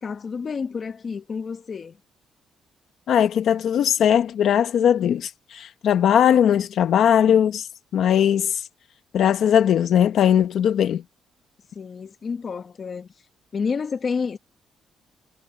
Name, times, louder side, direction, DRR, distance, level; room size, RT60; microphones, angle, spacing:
voice 1, 0.0-2.0 11.7-13.1 13.5-14.4, left 5 dB, 40° left, 1.4 m, -29 dB
voice 2, 3.1-7.7 7.9-8.6 9.1-11.0, left 9 dB, 65° left, 1.0 m, -19 dB
cardioid pair, 120°, 0 cm